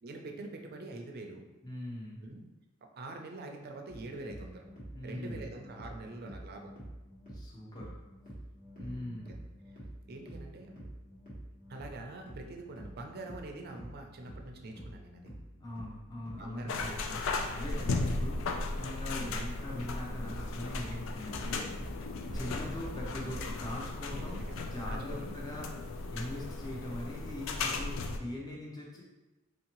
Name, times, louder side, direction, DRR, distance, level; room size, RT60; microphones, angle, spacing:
voice 1, 0.0-1.5 2.2-2.4 2.8-4.7 5.0-6.7 8.8-9.4 10.1-10.8 11.7-15.3 16.4-17.0 17.3-17.9 19.2-19.3 22.3-22.7 24.1-25.4, right 2 dB, 50° right, 3 dB, 0.5 m, -45 dB
voice 2, 1.6-2.2 4.9-5.5 7.3-8.0 8.8-9.3 15.6-17.2 17.5-22.1 22.3-25.7 26.1-29.0, left 1 dB, 20° left, -3 dB, 0.6 m, -42 dB
sound 1, 3.9-23.9, right 1 dB, 45° left, 1.3 m, -49 dB
sound 2, 16.7-28.2, left 3 dB, 65° left, 0.4 m, -36 dB
4.1 x 2.7 x 2.9 m, 1.0 s
head